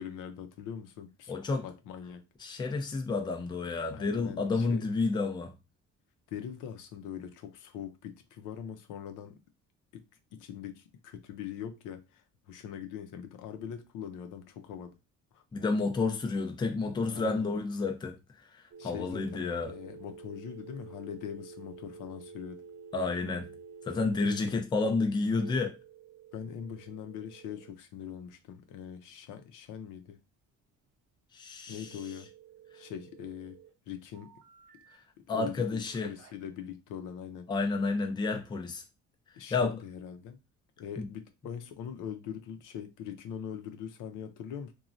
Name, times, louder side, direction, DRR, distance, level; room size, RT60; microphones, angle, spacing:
voice 1, 0.0-1.3 1.6-2.2 3.9-4.9 6.3-9.4 9.9-15.0 15.3-15.4 17.1-17.5 18.8-22.6 24.5-24.7 26.3-30.2 31.7-32.3 32.7-34.3 35.3-37.5 39.4-40.4 40.8-44.7, left 8 dB, 85° left, 0.6 m, -42 dB
voice 2, 1.3-1.6 2.4-5.5 15.5-18.2 18.8-19.7 22.9-23.5 23.9-25.7 31.3-31.9 35.3-36.1 37.5-38.8 39.5-39.8 41.0-41.1, left 3 dB, 15° left, 0.4 m, -30 dB
sound 1, 18.7-24.5 25.3-27.7 31.7-33.7 34.1-35.0 35.9-36.3, right 5 dB, 60° right, 0.7 m, -50 dB
3.0 x 2.2 x 2.5 m
cardioid pair, 135°, 30 cm